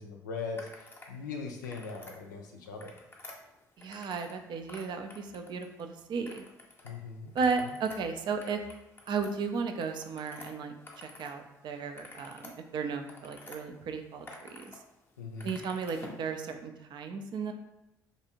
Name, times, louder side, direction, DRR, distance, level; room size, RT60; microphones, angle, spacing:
voice 1, 0.0-2.9 6.8-7.3 15.2-15.6, left 4 dB, 90° left, 2 dB, 0.4 m, -40 dB
sound 1, 0.5-1.1 1.5-2.2 2.6-4.4 4.6-5.8 6.2-6.9 7.2-11.4 11.7-13.6 14.0-14.8 15.1-16.2, left 2 dB, 25° left, 0.6 m, -50 dB
voice 2, 3.8-6.4 7.3-8.6 9.1-14.7 15.4-17.5, right 5 dB, 55° right, 6 dB, 0.4 m, -35 dB
2.6 x 2.3 x 2.9 m, 0.91 s
hypercardioid pair, 50°, 10 cm